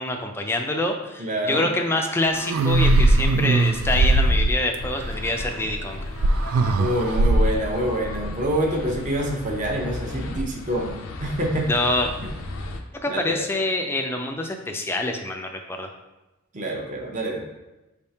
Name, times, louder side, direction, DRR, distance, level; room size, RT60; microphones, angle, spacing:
voice 1, 0.0-6.0 11.7-12.1 13.0-15.9, left 2 dB, 10° left, 3 dB, 0.4 m, -26 dB
voice 2, 1.2-1.8 6.7-11.7 13.1-13.5 16.5-17.5, right 1 dB, 35° right, 1 dB, 0.7 m, -26 dB
sound 1, 2.3-4.8 6.2-7.6, right 2 dB, 85° right, 0.3 m, -19 dB
sound 2, 4.8-12.8, left 1 dB, 70° left, 0.5 m, -34 dB
5.4 x 3.5 x 2.8 m, 1.0 s
head